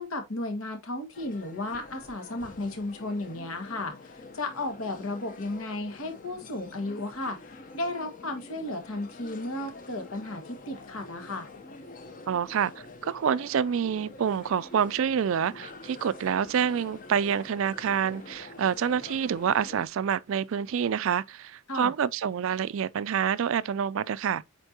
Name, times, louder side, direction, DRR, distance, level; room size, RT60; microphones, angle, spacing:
voice 1, 0.0-11.5 21.7-21.9, left 2 dB, 70° left, 1.7 m, -34 dB
sound 1, 1.1-19.9, left 3 dB, 35° left, 0.8 m, -47 dB
voice 2, 12.3-12.7 13.0-24.4, right 7 dB, 65° right, 0.3 m, -27 dB
7.9 x 4.5 x 2.8 m
head